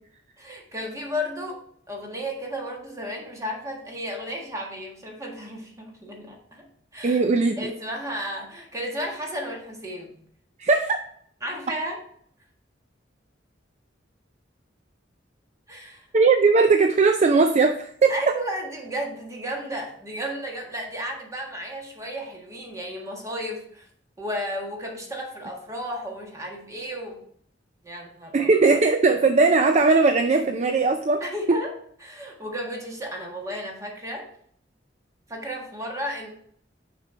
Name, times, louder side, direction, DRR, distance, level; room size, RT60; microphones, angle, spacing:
voice 1, 0.4-1.6 1.9-6.7 6.9-7.2 7.6-10.1 11.4-12.0 15.7-16.1 18.1-23.9 24.2-27.2 27.8-28.5 31.2-31.7 32.0-34.3 35.3-36.3, equal, 20° right, 0 dB, 1.5 m, -33 dB
voice 2, 7.0-7.7 10.6-11.0 16.1-18.3 28.3-31.2, right 4 dB, 40° right, 6 dB, 0.4 m, -19 dB
6.3 x 5.3 x 4.3 m, 0.63 s
head